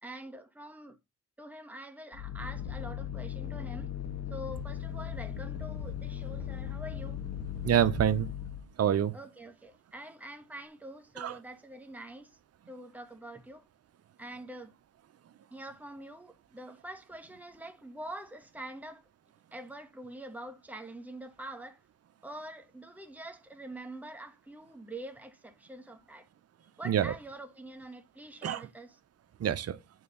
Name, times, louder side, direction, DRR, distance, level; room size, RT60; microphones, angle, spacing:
voice 1, 0.0-1.0 1.4-3.9 4.3-7.2 9.1-12.4 12.7-13.7 14.2-14.7 15.5-19.0 19.5-21.8 22.2-26.3 26.8-29.0, right 1 dB, 5° right, 1.6 m, -45 dB
sound 1, 2.1-8.7, left 9 dB, 55° left, 2.2 m, -38 dB
voice 2, 7.6-8.3 8.8-9.2 11.2-11.4 26.8-27.1 28.4-28.6 29.4-29.8, right 10 dB, 55° right, 1.0 m, -26 dB
9.3 x 3.6 x 7.0 m
cardioid pair, 90°, 30 cm